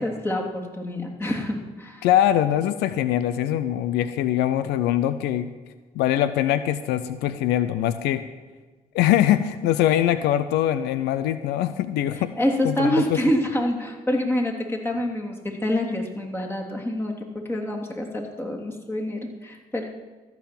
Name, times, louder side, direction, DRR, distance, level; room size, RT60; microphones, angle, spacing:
voice 1, 0.0-2.1 12.4-17.2 17.5-19.8, left 1 dB, 15° left, -1 dB, 3.1 m, -26 dB
voice 2, 2.0-5.5 6.0-8.2 8.9-12.3 12.6-13.2, left 12 dB, 90° left, 13 dB, 0.5 m, -22 dB
14.0 x 5.9 x 8.5 m, 1.4 s
supercardioid pair, 55°, 17 cm